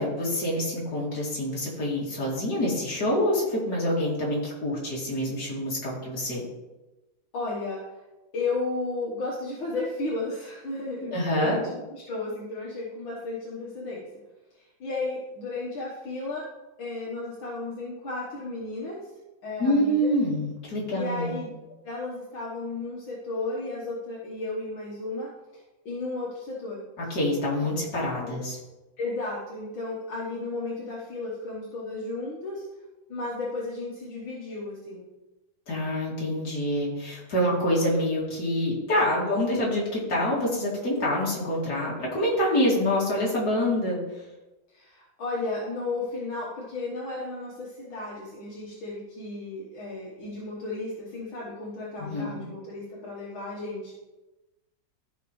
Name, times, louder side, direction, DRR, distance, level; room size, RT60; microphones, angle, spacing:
voice 1, 0.0-6.4 11.0-11.6 19.6-21.4 27.0-28.6 35.7-44.0 52.0-52.4, left 1 dB, 50° left, -5 dB, 2.9 m, -26 dB
voice 2, 7.3-8.0 8.3-14.1 14.5-16.5 16.8-19.1 19.4-20.1 20.9-21.5 21.8-25.3 25.9-26.8 27.8-27.9 28.2-28.4 29.0-32.7 33.1-35.1 44.7-54.0, left 3 dB, 70° left, -4 dB, 2.0 m, -34 dB
14.0 x 5.2 x 3.1 m, 1.1 s
omnidirectional pair, 2.2 m